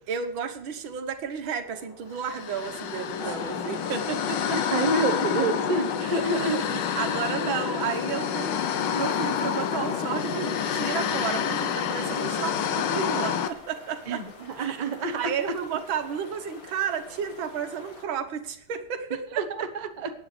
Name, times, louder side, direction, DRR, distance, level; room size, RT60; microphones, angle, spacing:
voice 1, 0.1-4.6 6.0-14.2 14.6-14.8 15.1-19.4, right 7 dB, 70° right, 8 dB, 1.9 m, -32 dB
sound 1, 1.6-5.6, left 2 dB, 85° left, 5.3 m, -46 dB
sound 2, 2.2-13.5, left 8 dB, 65° left, 1.3 m, -28 dB
voice 2, 4.5-6.8 14.1-15.3 19.4-20.1, right 3 dB, 40° right, 6 dB, 0.6 m, -28 dB
sound 3, 8.5-18.1, left 3 dB, 45° left, 2.1 m, -48 dB
22.5 x 10.0 x 3.3 m, 0.71 s
omnidirectional pair, 2.3 m